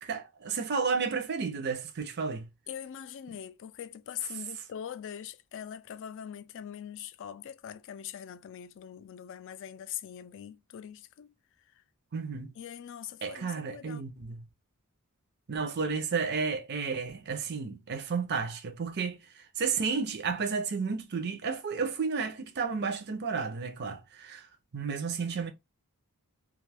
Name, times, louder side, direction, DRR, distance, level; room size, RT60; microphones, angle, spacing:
voice 1, 0.0-2.5 12.1-12.5 13.2-14.4 15.5-19.2 19.6-24.5 24.7-25.5, right 5 dB, 50° right, 0.5 m, -32 dB
voice 2, 2.7-11.3 12.6-14.0, left 9 dB, 55° left, 0.3 m, -42 dB
2.5 x 2.3 x 3.3 m
head